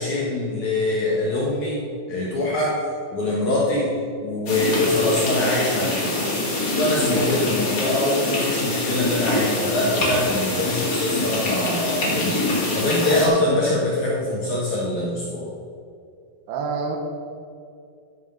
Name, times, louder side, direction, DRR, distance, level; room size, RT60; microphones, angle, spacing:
voice 1, 0.0-1.8 2.1-2.8 3.1-3.9 4.2-6.1 6.7-12.5 12.7-15.5, left 1 dB, 60° left, -5 dB, 2.1 m, -23 dB
sound 1, 4.5-13.3, left 2 dB, 40° left, 2.5 m, -24 dB
voice 2, 16.5-17.0, right 5 dB, 70° right, 2 dB, 3.0 m, -27 dB
13.0 x 6.4 x 5.5 m, 2.4 s
omnidirectional pair, 5.1 m